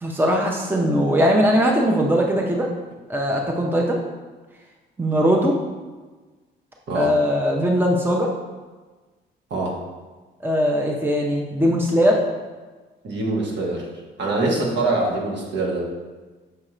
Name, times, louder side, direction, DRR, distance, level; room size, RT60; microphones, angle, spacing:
voice 1, 0.0-2.7 3.1-4.0 5.0-5.6 6.9-8.3 10.4-12.2, equal, 10° right, 0 dB, 0.7 m, -20 dB
voice 2, 9.5-9.8 13.0-13.9 14.2-15.9, right 2 dB, 65° right, -2 dB, 1.5 m, -24 dB
6.6 x 2.9 x 4.9 m, 1.3 s
cardioid pair, 90°, 20 cm